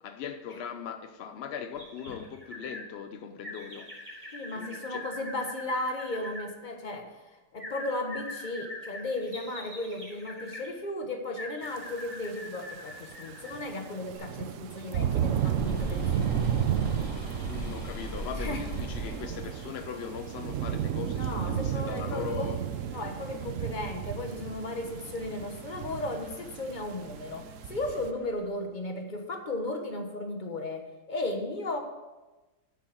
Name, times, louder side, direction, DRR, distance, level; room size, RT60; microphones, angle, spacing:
voice 1, 0.0-5.1 17.5-22.6, left 7 dB, 80° left, 0.5 m, -40 dB
sound 1, 1.7-2.8 3.4-6.5 7.6-10.7 11.4-13.6 14.1-14.2, left 1 dB, 5° right, 3.1 m, -43 dB
voice 2, 4.3-16.6 18.4-18.6 21.2-22.5 22.9-31.8, left 2 dB, 30° left, 1.2 m, -35 dB
sound 2, 11.8-11.9 12.9-28.1, right 10 dB, 65° right, 0.8 m, -33 dB
sound 3, 15.0-28.4, right 1 dB, 60° left, 2.9 m, -41 dB
8.4 x 7.0 x 7.4 m
omnidirectional pair, 1.8 m